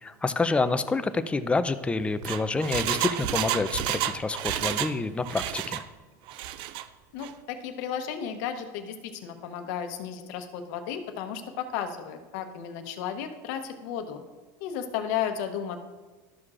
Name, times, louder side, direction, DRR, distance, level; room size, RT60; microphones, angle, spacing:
voice 1, 0.0-5.8, left 3 dB, 10° left, 11 dB, 0.4 m, -28 dB
Engine, 2.0-5.0 5.2-5.9 6.3-6.8 7.2-7.3, right 12 dB, 55° right, 0.4 m, -30 dB
voice 2, 7.1-14.2 14.6-15.8, left 8 dB, 70° left, 7 dB, 0.9 m, -34 dB
12.5 x 6.3 x 2.5 m, 1.3 s
supercardioid pair, 115°, 10 cm